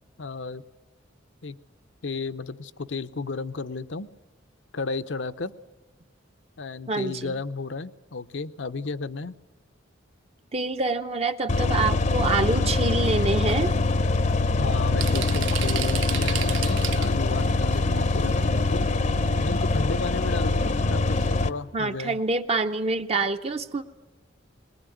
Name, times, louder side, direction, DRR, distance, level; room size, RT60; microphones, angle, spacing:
voice 1, 0.2-0.6 1.4-1.6 2.0-4.1 4.7-5.5 6.6-9.3 14.6-18.9 19.4-22.2, left 4 dB, 70° left, 11 dB, 0.8 m, -33 dB
voice 2, 6.9-7.3 10.5-13.7 21.7-23.8, right 3 dB, 30° right, 7 dB, 0.7 m, -26 dB
sound 1, 11.5-21.5, left 3 dB, 40° left, 0.7 m, -23 dB
sound 2, 13.1-13.2 13.5-13.7 14.3-14.4 14.6-17.3 17.7-17.8 18.7-18.8 19.1-19.3 19.6-19.7, right 11 dB, 75° right, 0.8 m, -33 dB
21.5 x 20.5 x 9.2 m, 1.1 s
head